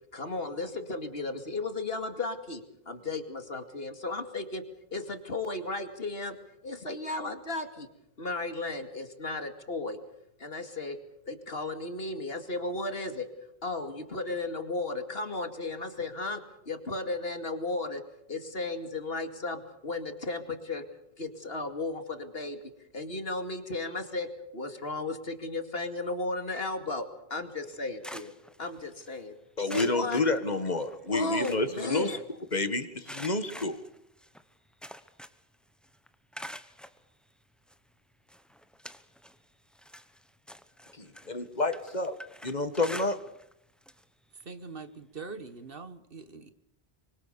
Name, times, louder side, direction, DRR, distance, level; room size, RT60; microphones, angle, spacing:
voice 1, 0.1-4.7 4.9-6.4 6.6-7.9 8.2-10.0 10.4-11.0 11.3-13.3 13.6-18.0 18.3-20.8 21.2-28.3 28.6-29.3 29.7-30.2 31.0-32.2, left 2 dB, 75° left, 2.7 m, -35 dB
sound 1, 27.6-29.2 29.7-31.0 31.2-32.6 33.0-35.5 35.8-37.0 37.7-37.8 38.3-39.4 39.7-43.5 43.8-44.0 44.4-44.5 45.7-45.8, equal, ahead, 1.0 m, -46 dB
voice 2, 29.6-32.2 32.5-33.8 40.9-42.2 42.4-43.2, left 3 dB, 45° left, 1.9 m, -29 dB
voice 3, 44.4-46.5, right 4 dB, 65° right, 1.7 m, -43 dB
25.5 x 24.5 x 6.9 m
omnidirectional pair, 1.0 m